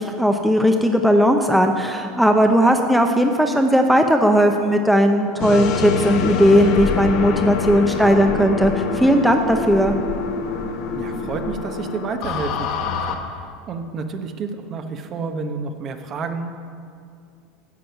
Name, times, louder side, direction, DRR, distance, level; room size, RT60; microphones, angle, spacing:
voice 1, 0.0-9.9, equal, 5° right, 4 dB, 0.7 m, -17 dB
sound 1, 5.4-13.1, left 5 dB, 60° left, 1.1 m, -25 dB
voice 2, 10.9-16.6, right 4 dB, 40° right, 6 dB, 0.9 m, -30 dB
11.0 x 7.6 x 5.7 m, 2.3 s
supercardioid pair, 115°, 0 cm